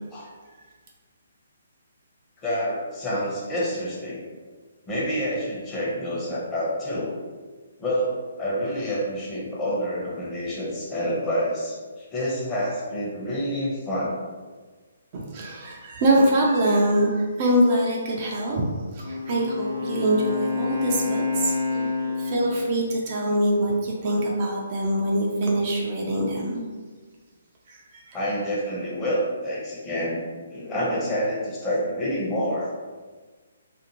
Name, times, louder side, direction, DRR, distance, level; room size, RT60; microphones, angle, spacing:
voice 1, 2.4-4.2 4.9-7.2 7.8-14.1 21.7-22.2 28.1-30.2 30.5-32.7, equal, 15° left, -7 dB, 0.8 m, -28 dB
voice 2, 15.1-18.6 18.9-21.8 22.2-26.6 27.7-28.2, right 1 dB, 35° right, -2 dB, 0.4 m, -24 dB
Wind instrument woodwind instrument, 19.0-22.8, left 4 dB, 70° left, 0.8 m, -28 dB
2.6 x 2.4 x 2.9 m, 1.4 s
figure-of-eight pair, 135°, 0 cm